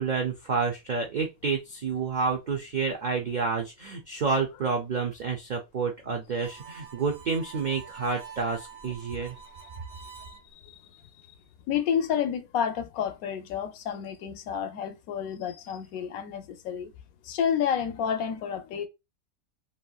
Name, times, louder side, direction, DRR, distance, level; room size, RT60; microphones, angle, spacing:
voice 1, 0.0-9.4, right 5 dB, 75° right, 0.4 m, -29 dB
Harmonica, 6.3-10.4, right 7 dB, 60° right, 1.0 m, -46 dB
voice 2, 10.2-10.8 11.7-16.9 17.3-18.9, left 8 dB, 80° left, 1.0 m, -30 dB
3.2 x 2.8 x 2.2 m
omnidirectional pair, 1.5 m